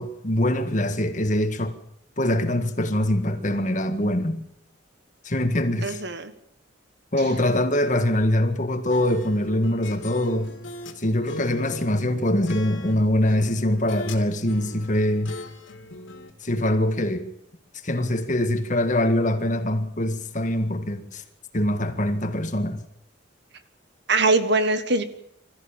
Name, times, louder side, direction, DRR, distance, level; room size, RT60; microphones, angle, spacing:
voice 1, 0.0-1.8 2.2-4.5 5.2-6.0 7.1-10.5 11.0-15.4 16.4-17.2 17.8-21.2 21.5-22.8, left 1 dB, 40° left, 1.9 m, -23 dB
voice 2, 5.8-6.3 24.1-25.0, right 3 dB, 60° right, 1.5 m, -22 dB
sound 1, 8.9-11.0 11.3-14.2 14.5-16.3, left 2 dB, 75° left, 3.0 m, -38 dB
22.5 x 14.0 x 9.0 m
head